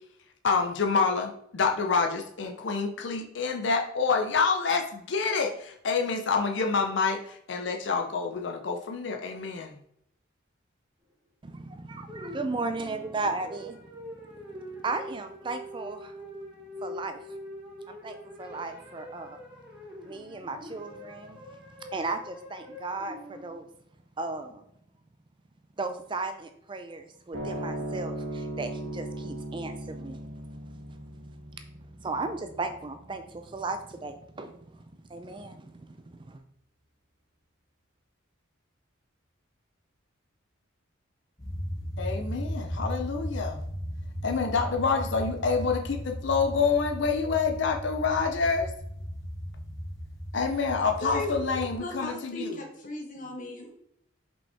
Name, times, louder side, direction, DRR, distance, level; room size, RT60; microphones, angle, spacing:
voice 1, 0.4-9.7 42.0-43.6 44.2-48.7 50.3-52.5, left 5 dB, 60° left, 4 dB, 0.5 m, -27 dB
voice 2, 11.4-13.8 14.8-16.1 16.8-17.2 17.9-19.4 20.0-21.4 21.9-23.7 24.2-24.6 25.8-30.2 32.0-34.8 35.1-36.4, right 3 dB, 25° right, 7 dB, 0.4 m, -35 dB
sound 1, 12.1-23.5, equal, 10° right, 1.4 m, -44 dB
sound 2, 27.3-34.0, right 1 dB, 75° right, 2.0 m, -38 dB
sound 3, 41.4-51.8, equal, 15° left, 1.8 m, -36 dB
voice 3, 51.0-53.7, left 1 dB, 40° left, 1 dB, 1.3 m, -37 dB
5.4 x 5.3 x 3.4 m, 0.73 s
head